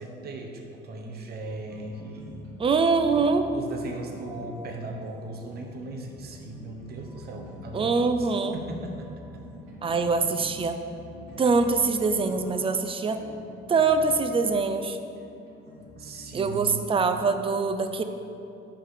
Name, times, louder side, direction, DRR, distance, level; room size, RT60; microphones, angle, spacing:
voice 1, 0.0-2.4 3.5-9.3 16.0-16.9, right 2 dB, 50° right, 2 dB, 1.0 m, -38 dB
sound 1, 1.4-17.3, left 1 dB, 70° right, 1.6 m, -46 dB
voice 2, 2.6-3.5 7.7-8.6 9.8-10.8 11.4-13.2 13.7-15.0 16.3-18.0, right 4 dB, 25° right, 8 dB, 0.5 m, -24 dB
5.7 x 5.1 x 6.5 m, 2.7 s
cardioid pair, 110°, 21 cm